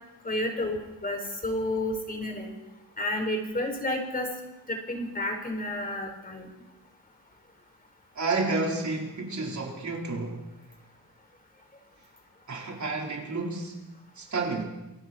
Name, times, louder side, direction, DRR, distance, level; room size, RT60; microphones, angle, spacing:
voice 1, 0.2-2.5 3.0-4.3 4.7-6.5, left 1 dB, 25° left, 4.9 m, -31 dB
voice 2, 8.2-10.4 12.5-13.8 14.2-14.6, right 3 dB, 50° right, 4.6 m, -30 dB
28.5 x 23.5 x 4.6 m
wide cardioid pair, 135°, 36 cm